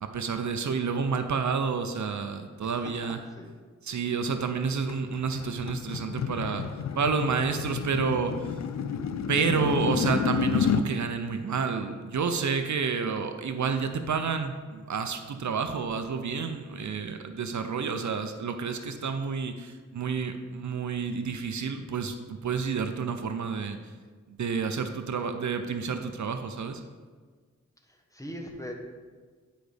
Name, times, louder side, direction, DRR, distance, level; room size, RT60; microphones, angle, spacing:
voice 1, 0.1-3.2 3.8-6.7 7.0-8.5 9.3-23.8 24.3-26.8, right 5 dB, 65° right, 7 dB, 0.6 m, -29 dB
sound 1, 4.9-10.9, left 7 dB, 60° left, 0.4 m, -30 dB
voice 2, 28.1-28.7, equal, 10° left, 1 dB, 1.1 m, -39 dB
10.0 x 5.1 x 3.4 m, 1.5 s
wide cardioid pair, 75°, 31 cm